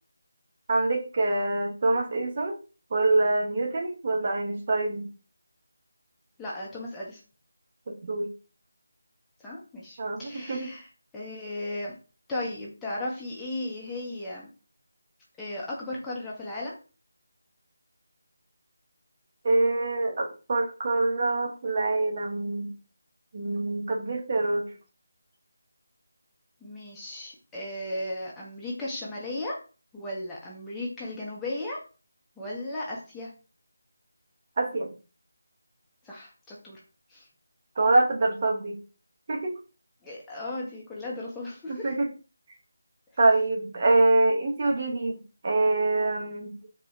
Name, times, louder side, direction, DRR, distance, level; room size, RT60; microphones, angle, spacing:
voice 1, 0.7-2.6 2.9-5.1 7.9-8.3 10.0-10.7 19.4-22.7 23.3-24.6 34.6-34.9 37.8-38.8 39.3-39.6 41.7-42.1 43.2-46.5, right 2 dB, 30° right, 0 dB, 0.8 m, -25 dB
voice 2, 6.4-7.2 9.4-10.9 11.1-12.0 12.3-14.5 15.4-16.8 26.6-29.6 29.9-31.8 32.4-33.3 36.0-36.8 37.1-37.3 40.0-41.9, left 1 dB, 5° left, -6 dB, 0.6 m, -35 dB
4.3 x 2.1 x 3.2 m, 0.34 s
figure-of-eight pair, 160°, 0 cm